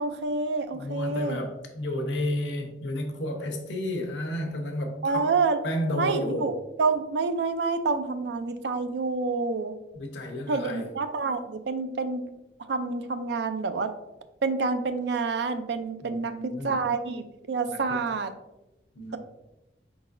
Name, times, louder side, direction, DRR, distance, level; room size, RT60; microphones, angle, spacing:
voice 1, 0.0-1.4 5.0-5.6 6.0-9.7 10.5-12.3 12.7-13.9 14.4-18.3, right 4 dB, 70° right, 9 dB, 0.4 m, -28 dB
voice 2, 0.7-5.3 5.6-6.5 9.9-10.9 16.0-16.7 17.7-17.8 18.9-19.2, left 1 dB, 85° left, 3 dB, 0.8 m, -31 dB
4.4 x 4.0 x 2.5 m, 0.96 s
head